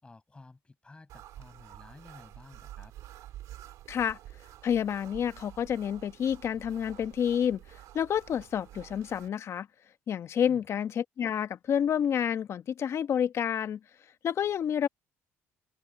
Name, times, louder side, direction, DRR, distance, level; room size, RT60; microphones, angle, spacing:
voice 1, 0.0-2.9 10.5-10.7, left 3 dB, 20° left, 6.0 m, -53 dB
sound 1, 1.1-9.3, right 13 dB, 75° right, 2.5 m, -49 dB
voice 2, 3.9-4.2 4.6-7.6 7.9-9.7 10.1-13.8 14.2-14.9, left 8 dB, 50° left, 1.2 m, -29 dB
open air
cardioid pair, 95°, 6 cm